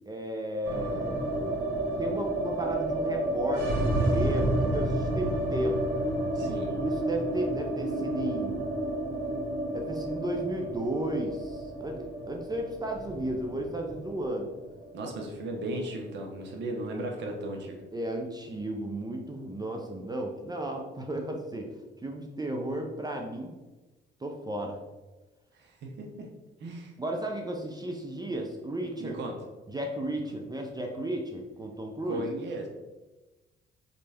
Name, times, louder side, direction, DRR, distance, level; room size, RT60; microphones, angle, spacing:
voice 1, 0.1-1.3 2.0-5.8 6.4-8.6 9.7-14.5 17.9-21.7 22.0-23.5 24.2-24.8 27.0-29.2 29.7-32.2, right 1 dB, 20° right, 2 dB, 0.6 m, -34 dB
sound 1, 0.6-16.8 17.0-17.1 17.4-18.1, right 1 dB, 85° right, 1.2 m, -31 dB
voice 2, 6.3-6.7 14.9-17.7 25.5-26.3 26.6-26.9 29.0-29.3 32.0-32.7, right 1 dB, 65° right, 1 dB, 0.8 m, -36 dB
4.0 x 3.3 x 3.4 m, 1.1 s
cardioid pair, 90°, 20 cm